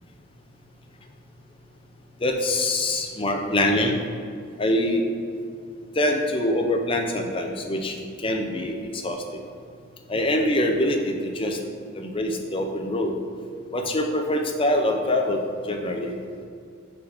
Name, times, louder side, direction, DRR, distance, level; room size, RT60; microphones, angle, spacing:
voice 1, 2.2-3.9 4.6-5.0 6.0-9.4 10.1-11.6 11.9-13.1 13.7-16.1, left 1 dB, 25° left, 3 dB, 0.5 m, -24 dB
5.1 x 4.9 x 4.9 m, 2.3 s
head